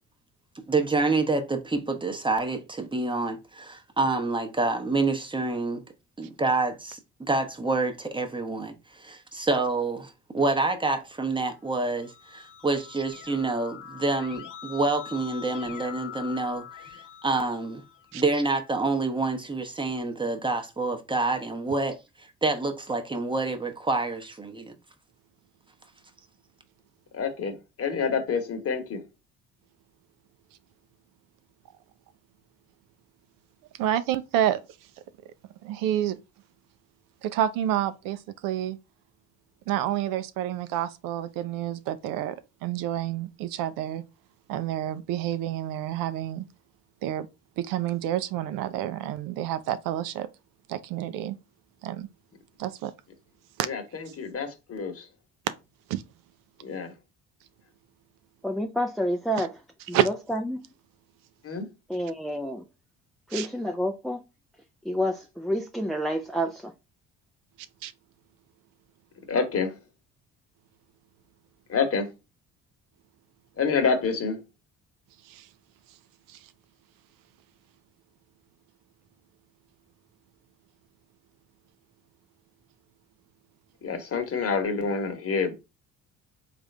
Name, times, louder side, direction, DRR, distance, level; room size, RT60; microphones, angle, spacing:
voice 1, 0.7-5.8 6.2-7.0 7.3-17.8 18.1-24.7, right 3 dB, 15° right, 0.8 m, -27 dB
Keyboard (musical), 11.7-18.3, left 9 dB, 60° left, 1.3 m, -44 dB
voice 2, 27.1-29.0 53.7-53.8 54.2-55.0 56.6-56.9 61.4-61.7 69.3-69.7 71.7-72.1 73.6-74.4 83.8-85.5, left 5 dB, 45° left, 1.1 m, -27 dB
voice 3, 33.8-34.6 35.6-36.2 37.2-38.8 39.7-42.4 42.6-44.0 44.5-46.5 47.0-47.3 47.6-50.3 50.7-51.3 51.8-52.1 52.6-52.9 53.6-53.7 55.9-56.0 59.9-60.1 63.3-63.5 67.8-67.9 75.2-75.5 76.3-76.4, right 11 dB, 75° right, 0.5 m, -28 dB
voice 4, 58.4-59.6 59.9-60.6 61.9-62.6 63.3-64.2 64.8-66.7, equal, ahead, 0.4 m, -29 dB
3.6 x 2.5 x 3.2 m
supercardioid pair, 65°, 34 cm